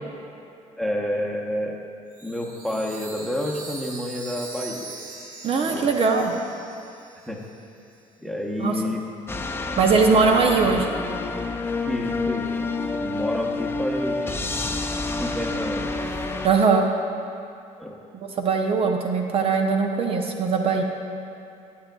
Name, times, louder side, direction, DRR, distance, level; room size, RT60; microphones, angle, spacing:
voice 1, 0.8-1.8 2.2-4.9 5.6-5.9 6.1-6.2 7.3-7.4 8.2-9.0 10.5-10.6 11.8-14.4 15.2-15.9 17.8-18.0, left 1 dB, ahead, 0 dB, 0.9 m, -29 dB
Chime, 2.1-7.7, right 3 dB, 85° right, 1.1 m, -41 dB
voice 2, 5.4-6.3 8.6-8.8 9.8-10.9 16.4-16.9 18.1-20.8, right 4 dB, 50° right, 2 dB, 0.7 m, -20 dB
sound 1, 9.3-16.5, left 3 dB, 20° left, 0.5 m, -28 dB
11.5 x 8.5 x 2.3 m, 2.7 s
cardioid pair, 95°, 13 cm